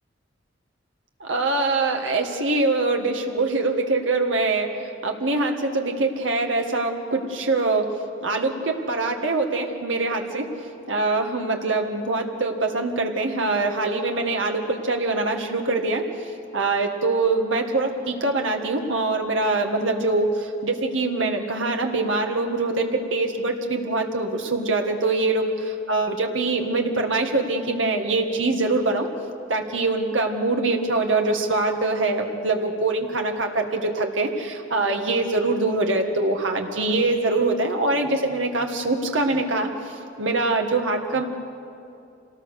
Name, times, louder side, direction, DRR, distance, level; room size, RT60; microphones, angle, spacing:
voice 1, 1.2-4.7 5.0-7.9 8.2-10.5 10.9-16.1 16.5-29.1 29.5-39.7 40.2-41.2, right 2 dB, 85° right, 3 dB, 1.9 m, -23 dB
26.0 x 18.5 x 6.6 m, 2.6 s
head